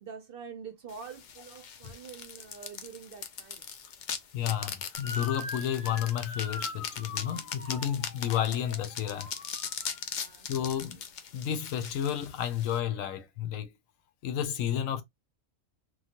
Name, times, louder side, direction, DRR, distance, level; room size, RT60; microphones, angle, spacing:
voice 1, 0.0-3.7 10.2-11.0, right 6 dB, 60° right, 0.6 m, -46 dB
sound 1, 0.9-12.8, left 7 dB, 65° left, 0.4 m, -40 dB
voice 2, 4.3-9.3 10.5-11.0 11.3-13.7 14.2-15.0, left 10 dB, 90° left, 1.0 m, -31 dB
Motor vehicle (road) / Siren, 4.9-10.2, left 3 dB, 45° left, 0.9 m, -43 dB
3.0 x 2.2 x 2.8 m
omnidirectional pair, 1.3 m